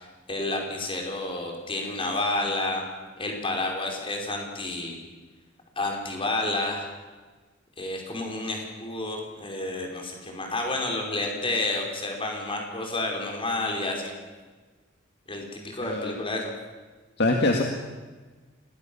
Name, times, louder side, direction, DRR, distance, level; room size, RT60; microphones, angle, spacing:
voice 1, 0.0-2.8 3.2-5.0 5.8-6.9 7.8-14.1 15.3-16.5, left 2 dB, 25° left, 1 dB, 5.2 m, -30 dB
voice 2, 15.8-16.2 17.2-17.6, left 2 dB, 60° left, 2 dB, 2.0 m, -23 dB
27.5 x 20.0 x 7.2 m, 1.3 s
head